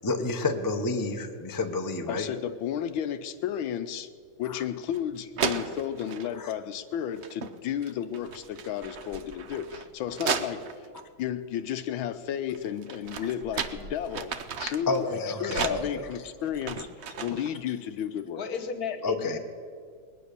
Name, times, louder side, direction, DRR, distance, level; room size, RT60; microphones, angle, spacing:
voice 1, 0.0-2.3 4.4-4.6 6.3-6.5 14.9-16.0 17.7-17.8 19.0-19.4, left 3 dB, 35° left, 5 dB, 0.3 m, -30 dB
voice 2, 2.1-4.1 4.4-10.6 11.2-14.3 14.6-16.9 17.2-18.4, left 9 dB, 75° left, 11 dB, 1.4 m, -33 dB
sound 1, 4.9-5.0 5.4-6.3 7.1-7.5 7.8-11.0 12.5-15.0 15.5-17.5, right 6 dB, 90° right, 0.5 m, -34 dB
voice 3, 18.3-19.4, left 6 dB, 50° left, 9 dB, 1.4 m, -35 dB
21.5 x 9.5 x 6.7 m, 2.2 s
omnidirectional pair, 2.3 m